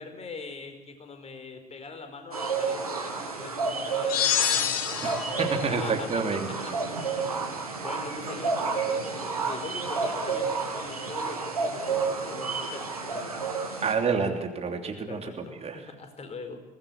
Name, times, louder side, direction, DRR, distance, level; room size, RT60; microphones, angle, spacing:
voice 1, 0.0-4.7 5.7-6.5 7.8-13.5 15.1-16.6, left 4 dB, 35° left, 6 dB, 4.8 m, -42 dB
sound 1, 2.3-13.9, right 4 dB, 85° right, 2.4 m, -31 dB
sound 2, 4.1-5.5, left 9 dB, 60° left, 1.9 m, -26 dB
voice 2, 5.0-6.7 13.8-15.8, right 5 dB, 35° right, 5 dB, 3.2 m, -29 dB
23.0 x 18.5 x 7.2 m, 1.1 s
figure-of-eight pair, 55°, 18 cm